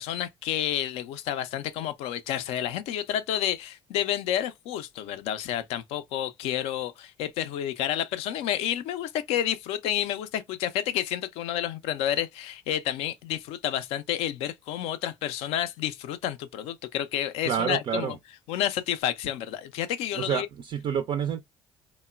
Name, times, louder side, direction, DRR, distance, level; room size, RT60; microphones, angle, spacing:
voice 1, 0.0-18.2 18.5-20.5, left 11 dB, 65° left, 0.4 m, -30 dB
voice 2, 17.5-18.2 20.1-21.4, right 8 dB, 45° right, 0.3 m, -28 dB
3.0 x 2.0 x 2.2 m
hypercardioid pair, 55°, 11 cm